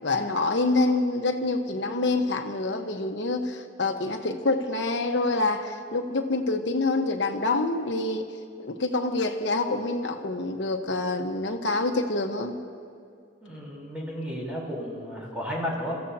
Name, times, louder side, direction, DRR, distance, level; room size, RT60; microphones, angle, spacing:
voice 1, 0.0-8.2 8.6-12.6, left 2 dB, 75° left, 5 dB, 1.1 m, -26 dB
voice 2, 13.4-16.0, equal, 5° right, -5 dB, 3.7 m, -33 dB
29.0 x 15.0 x 2.8 m, 2.3 s
head